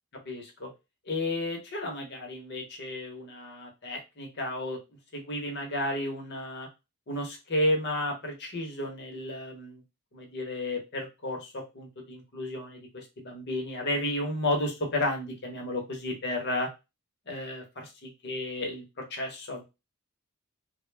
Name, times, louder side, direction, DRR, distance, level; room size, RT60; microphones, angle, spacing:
voice 1, 0.3-0.7 1.1-4.8 5.1-6.7 7.1-9.8 10.1-16.7 17.3-19.6, left 1 dB, 50° left, 2 dB, 0.8 m, -33 dB
2.1 x 2.0 x 3.2 m, 0.25 s
head